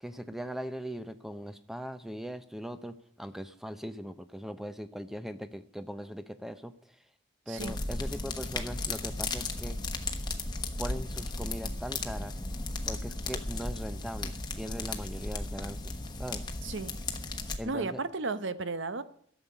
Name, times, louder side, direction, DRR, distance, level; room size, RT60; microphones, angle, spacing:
voice 1, 0.0-7.0 7.5-9.8 10.8-12.4 12.9-15.9 16.2-16.5 17.6-18.0, equal, ahead, 0.6 m, -40 dB
sound 1, 7.6-17.6, left 2 dB, 20° left, 1.1 m, -35 dB
voice 2, 16.6-17.0 17.6-19.0, right 3 dB, 60° right, 0.8 m, -34 dB
13.0 x 7.3 x 9.8 m
head